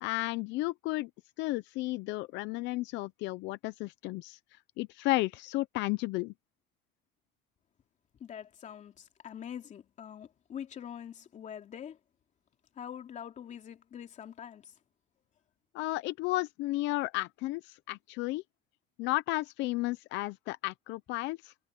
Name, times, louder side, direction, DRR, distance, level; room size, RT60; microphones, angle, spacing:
voice 1, 0.0-1.1 1.4-4.4 4.8-6.3 15.7-18.4 19.0-21.7, left 19 dB, 65° left, 0.7 m, -33 dB
voice 2, 8.2-12.0 12.7-14.7, left 9 dB, 40° left, 3.0 m, -44 dB
cardioid pair, 130°, 20 cm